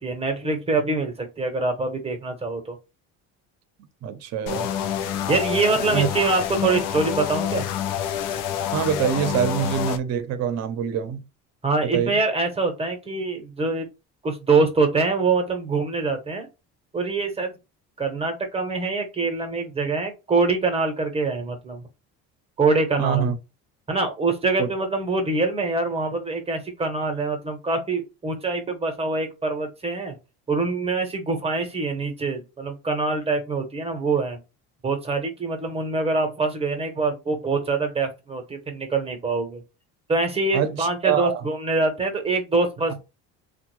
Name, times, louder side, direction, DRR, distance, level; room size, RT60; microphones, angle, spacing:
voice 1, 0.0-2.8 5.3-7.7 11.6-13.9 14.2-16.5 16.9-17.5 18.0-21.8 22.6-23.3 23.9-30.2 30.5-34.4 34.8-39.6 40.1-43.0, right 3 dB, 15° right, 0.8 m, -24 dB
voice 2, 4.0-4.7 5.7-6.1 8.7-11.2 11.8-12.2 23.0-23.4 24.6-24.7 40.5-41.5 42.9-43.0, right 8 dB, 50° right, 0.6 m, -25 dB
sound 1, 4.5-10.0, left 9 dB, 65° left, 0.5 m, -27 dB
3.4 x 2.2 x 3.0 m
cardioid pair, 110°, 35 cm